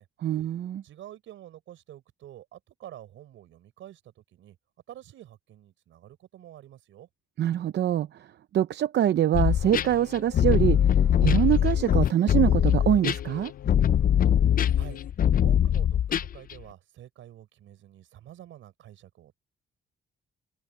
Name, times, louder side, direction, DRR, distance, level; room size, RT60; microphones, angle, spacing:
voice 1, 0.2-0.8 7.4-8.1 8.5-10.8 11.2-13.5, right 11 dB, 60° right, 0.7 m, -24 dB
voice 2, 0.8-4.6 4.9-7.1 14.7-15.0 15.4-19.4, right 12 dB, 80° right, 5.3 m, -48 dB
sound 1, 9.3-16.5, left 9 dB, 45° left, 0.5 m, -22 dB
sound 2, 9.5-15.1, left 13 dB, 85° left, 4.2 m, -43 dB
open air
cardioid pair, 90°, 20 cm